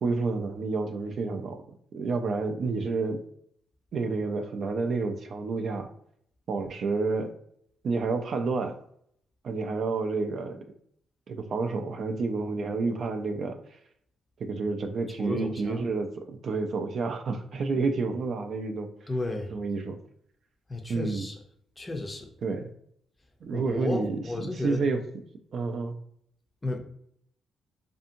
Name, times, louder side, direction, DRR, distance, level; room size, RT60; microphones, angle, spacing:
voice 1, 0.0-1.6 1.9-3.2 3.9-5.9 6.5-7.3 7.8-8.8 9.4-10.6 11.3-13.6 14.4-18.9 19.5-20.0 20.9-21.3 22.4-22.7 23.4-25.0 25.5-26.0, right 4 dB, 55° right, 6 dB, 0.3 m, -29 dB
voice 2, 15.2-15.8 19.1-19.5 20.7-21.3 21.8-22.3 23.5-24.8 26.6-26.8, left 2 dB, 20° left, 4 dB, 0.5 m, -33 dB
2.6 x 2.6 x 2.6 m, 0.67 s
cardioid pair, 90°, 0 cm